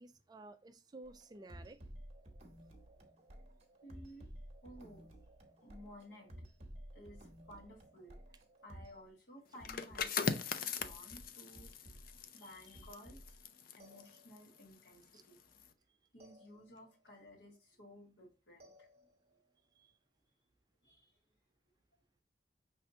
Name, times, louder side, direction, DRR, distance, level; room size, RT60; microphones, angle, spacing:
voice 1, 0.0-1.8 15.1-15.2 19.8-19.9, right 2 dB, 20° right, 0.4 m, -54 dB
sound 1, 1.0-9.0 9.6-10.1 10.8-12.2 12.6-13.4 13.8-14.6 16.2-17.0 18.6-19.4, equal, 40° right, 1.0 m, -55 dB
voice 2, 3.8-4.3 4.6-5.0 5.5-6.3 6.9-8.2 8.6-11.7 12.3-13.4 13.7-15.4 16.1-18.9 20.8-21.1, equal, 70° left, 1.7 m, -56 dB
sound 2, 9.5-15.0 15.4-15.7, left 6 dB, 50° left, 0.4 m, -41 dB
5.5 x 3.3 x 2.7 m
head